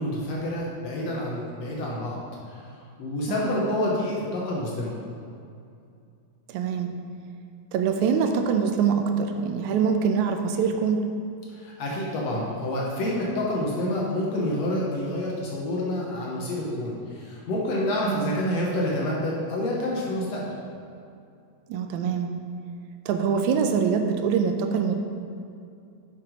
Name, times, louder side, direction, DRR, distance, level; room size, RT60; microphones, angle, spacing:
voice 1, 0.0-2.2 2.5-2.6 3.0-5.0 11.5-20.5, left 1 dB, 65° left, -3 dB, 2.1 m, -28 dB
voice 2, 6.5-6.9 7.7-11.1 18.1-18.4 21.7-22.3 23.1-24.9, right 6 dB, 85° right, 5 dB, 2.0 m, -24 dB
7.5 x 5.9 x 5.0 m, 2.5 s
omnidirectional pair, 3.3 m